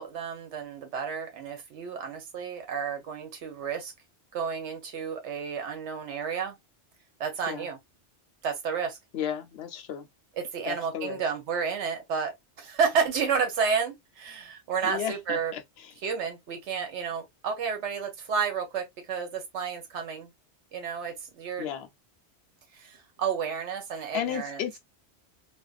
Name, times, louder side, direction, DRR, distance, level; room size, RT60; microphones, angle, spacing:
voice 1, 0.0-3.9 4.3-6.5 7.2-7.8 8.4-9.0 10.4-15.5 16.0-20.3 20.7-21.7 22.7-24.6, right 6 dB, 80° right, 1.0 m, -31 dB
voice 2, 9.1-10.1 10.7-11.2 14.8-15.6 21.6-21.9 24.1-24.8, left 9 dB, 70° left, 0.8 m, -33 dB
2.5 x 2.2 x 2.2 m
omnidirectional pair, 1.2 m